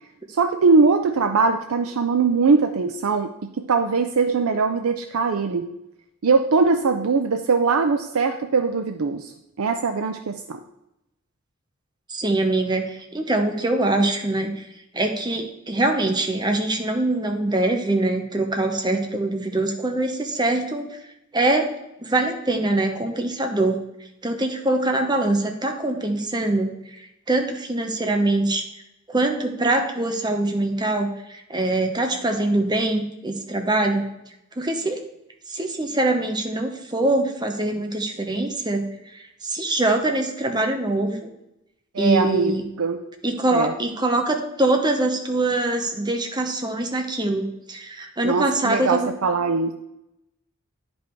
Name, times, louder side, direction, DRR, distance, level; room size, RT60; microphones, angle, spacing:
voice 1, 0.3-5.7 6.2-9.3 9.6-10.6 41.9-43.0 43.5-43.7 48.2-49.7, right 4 dB, 80° right, 7 dB, 0.5 m, -21 dB
voice 2, 12.1-14.6 14.9-20.8 21.3-21.7 22.0-23.8 24.2-26.7 27.3-28.6 29.1-34.0 34.6-35.0 35.5-38.8 39.4-41.3 42.0-42.6 43.2-49.1, right 2 dB, 20° right, 4 dB, 1.0 m, -23 dB
9.6 x 5.4 x 4.5 m, 0.86 s
head